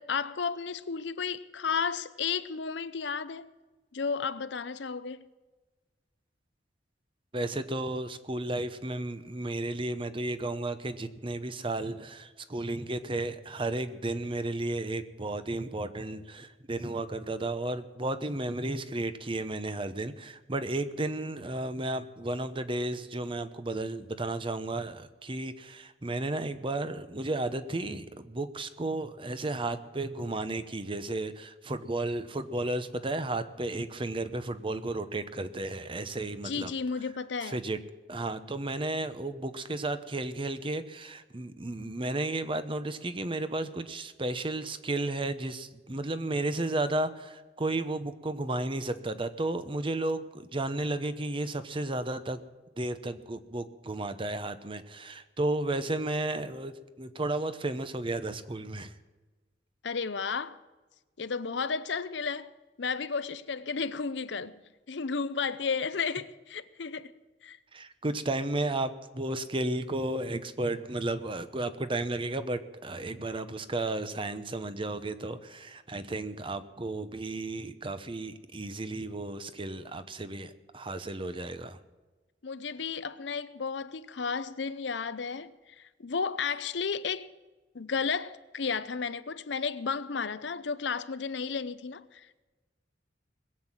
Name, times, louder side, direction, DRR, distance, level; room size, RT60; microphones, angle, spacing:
voice 1, 0.0-3.5 3.9-5.2 36.4-37.6 59.8-60.6 61.2-64.6 64.9-67.1 67.4-67.6 82.4-85.5 86.0-87.3 87.7-92.4, left 5 dB, 70° left, 0.7 m, -33 dB
voice 2, 7.3-36.7 37.4-37.8 38.1-52.4 52.8-58.9 67.7-81.8, right 2 dB, 30° right, 0.9 m, -33 dB
20.5 x 8.1 x 7.4 m
head